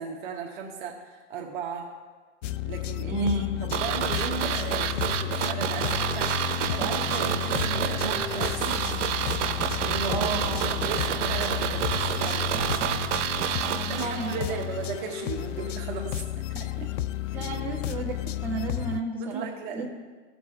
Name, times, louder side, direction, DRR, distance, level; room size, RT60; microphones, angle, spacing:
voice 1, 0.0-1.9 2.6-3.3 3.6-8.9 9.8-12.8 13.9-16.2 16.5-16.9 17.3-17.5 19.2-19.9, right 5 dB, 45° right, 1 dB, 1.1 m, -36 dB
sound 1, 2.4-19.0, left 13 dB, 90° left, 0.5 m, -32 dB
voice 2, 3.1-3.5 10.1-10.7 13.6-14.7 17.3-18.1 18.4-19.5 19.7-19.9, right 3 dB, 5° right, -6 dB, 1.6 m, -32 dB
sound 2, 3.7-14.7 14.9-15.0, right 9 dB, 85° right, 0.8 m, -29 dB
sound 3, 6.8-13.5, left 3 dB, 25° left, 1.1 m, -41 dB
15.5 x 5.7 x 4.4 m, 1.4 s
supercardioid pair, 150°, 36 cm